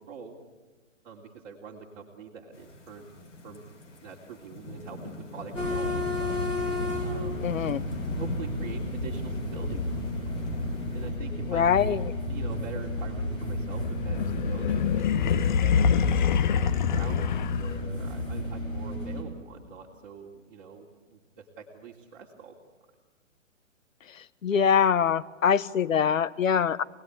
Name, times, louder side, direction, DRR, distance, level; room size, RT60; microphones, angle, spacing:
voice 1, 1.0-3.1 3.4-3.6 4.0-6.4 7.0-7.6 8.1-10.0 10.9-12.0 12.3-22.5, right 6 dB, 40° right, -3 dB, 3.2 m, -44 dB
sound 1, 2.5-11.1, left 2 dB, 60° left, 6.0 m, -39 dB
sound 2, 5.5-19.2, left 1 dB, 15° left, 4.7 m, -32 dB
voice 2, 7.4-7.8 11.5-12.1 24.2-26.8, left 7 dB, 80° left, 17 dB, 1.0 m, -24 dB
sound 3, 13.8-18.1, left 8 dB, 35° left, 0.8 m, -25 dB
27.0 x 19.5 x 9.8 m, 1.4 s
hypercardioid pair, 155°, 39 cm